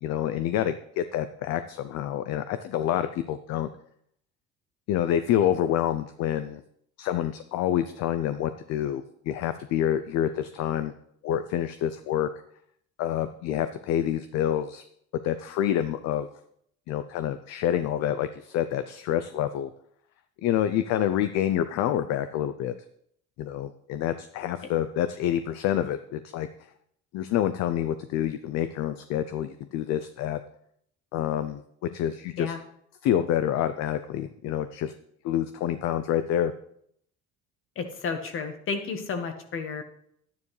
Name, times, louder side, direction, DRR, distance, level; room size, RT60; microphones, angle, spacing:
voice 1, 0.0-3.7 4.9-6.6 7.0-10.9 11.2-12.3 13.0-14.8 15.2-16.3 16.9-19.7 20.4-22.7 23.4-26.5 27.1-30.4 31.1-32.5 33.0-34.9 35.2-36.5, left 11 dB, 65° left, 11 dB, 0.6 m, -27 dB
voice 2, 37.7-39.8, left 5 dB, 45° left, 7 dB, 1.5 m, -32 dB
11.0 x 9.6 x 3.3 m, 0.69 s
cardioid pair, 125°, 29 cm